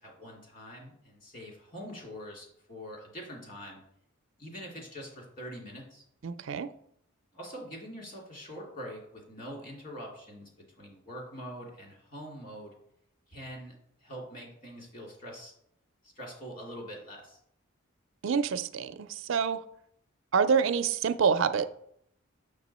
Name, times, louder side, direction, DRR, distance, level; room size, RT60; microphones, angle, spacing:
voice 1, 0.0-3.8 4.4-6.0 7.3-12.7 13.3-13.7 14.0-15.5 16.0-17.4, equal, 40° left, -1 dB, 2.5 m, -44 dB
voice 2, 6.2-6.7 18.2-19.6 20.3-21.7, right 6 dB, 70° right, 11 dB, 0.4 m, -27 dB
6.8 x 6.4 x 4.2 m, 0.72 s
head